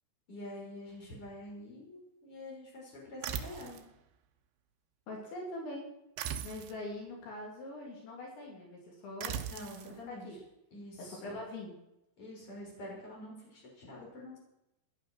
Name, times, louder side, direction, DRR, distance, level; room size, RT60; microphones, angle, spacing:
voice 1, 0.3-3.8 9.5-10.3 10.7-11.4 12.2-14.4, left 1 dB, 30° left, -3 dB, 6.5 m, -47 dB
sound 1, 3.2-3.9 6.2-6.8 9.2-9.9, right 9 dB, 75° right, 2.8 m, -39 dB
voice 2, 5.1-5.9 6.4-9.4 10.1-10.4 11.0-11.8, left 1 dB, 75° left, -1 dB, 5.3 m, -43 dB
17.5 x 10.5 x 6.4 m, 0.87 s
omnidirectional pair, 5.3 m